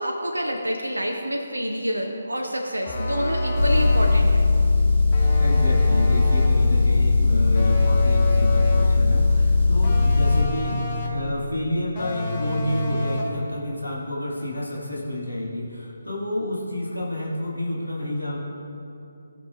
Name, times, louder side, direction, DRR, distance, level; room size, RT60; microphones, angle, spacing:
voice 1, 0.0-4.4, equal, 75° right, 1 dB, 0.7 m, -27 dB
sound 1, 2.9-4.3 5.1-6.6 7.6-9.0 9.8-11.3 12.0-13.4, left 1 dB, 30° left, 1.3 m, -29 dB
Motor vehicle (road) / Engine, 3.5-10.5, left 3 dB, 10° right, 1.7 m, -19 dB
voice 2, 5.4-18.4, left 1 dB, 90° left, -5 dB, 1.8 m, -29 dB
17.0 x 6.1 x 2.3 m, 2.9 s
figure-of-eight pair, 145°, 0 cm